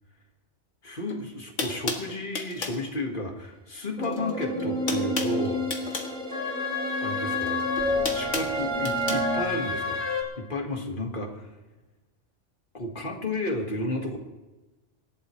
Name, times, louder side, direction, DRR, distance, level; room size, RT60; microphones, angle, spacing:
voice 1, 0.8-5.6 7.0-7.7 8.1-10.0 10.4-11.5 12.7-14.2, left 1 dB, 45° left, 2 dB, 1.9 m, -32 dB
sound 1, 1.1-1.2 1.6-2.8 4.0-4.3 4.6-6.1 7.3-9.2, left 3 dB, 85° left, 1.9 m, -33 dB
sound 2, 4.0-9.4, left 1 dB, 5° left, 2.2 m, -30 dB
sound 3, 4.5-10.2, left 3 dB, 50° right, 3.0 m, -32 dB
25.5 x 11.5 x 3.2 m, 1.1 s
omnidirectional pair, 1.3 m